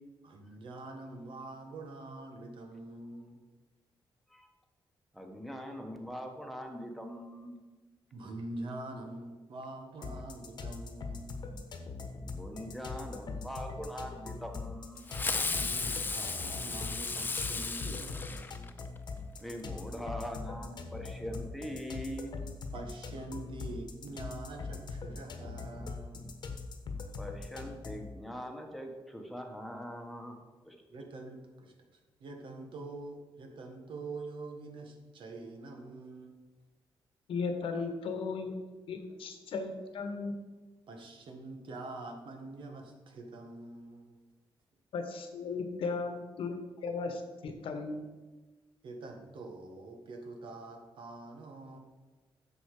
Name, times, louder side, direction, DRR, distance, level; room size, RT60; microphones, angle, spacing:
voice 1, 0.2-3.4 8.1-11.4 15.5-18.2 22.7-26.4 30.9-36.4 40.9-44.2 48.8-51.8, right 2 dB, 70° right, 4 dB, 1.6 m, -45 dB
voice 2, 5.1-7.6 12.3-15.1 19.4-22.3 27.2-30.8, equal, ahead, 2 dB, 1.3 m, -42 dB
sound 1, 10.0-28.1, left 4 dB, 55° left, 1.2 m, -42 dB
Fireworks, 15.1-19.0, left 4 dB, 20° left, 0.5 m, -35 dB
voice 3, 37.3-40.4 44.9-48.0, left 4 dB, 85° left, 6 dB, 1.3 m, -36 dB
10.5 x 7.2 x 4.9 m, 1.3 s
wide cardioid pair, 150°, 9 cm